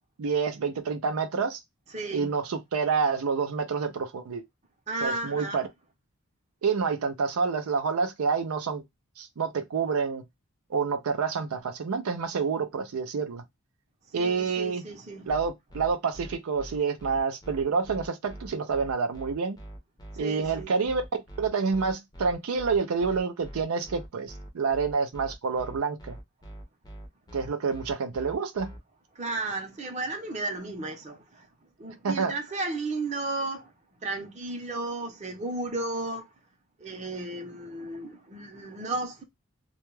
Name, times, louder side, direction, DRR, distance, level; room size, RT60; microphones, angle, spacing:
voice 1, 0.2-1.6 2.1-4.4 5.0-5.7 6.6-8.8 9.2-10.2 10.7-13.4 14.1-14.8 15.2-19.6 20.2-21.0 21.4-26.2 27.3-28.7 32.0-32.3, right 5 dB, 85° right, 0.4 m, -28 dB
voice 2, 1.9-2.3 4.9-5.6 14.1-15.3 20.1-20.7 29.1-31.5 31.8-33.7 34.0-36.3 36.8-39.2, right 2 dB, 30° right, 0.7 m, -34 dB
sound 1, 15.3-28.8, right 1 dB, 20° left, 0.5 m, -43 dB
2.2 x 2.1 x 3.0 m
head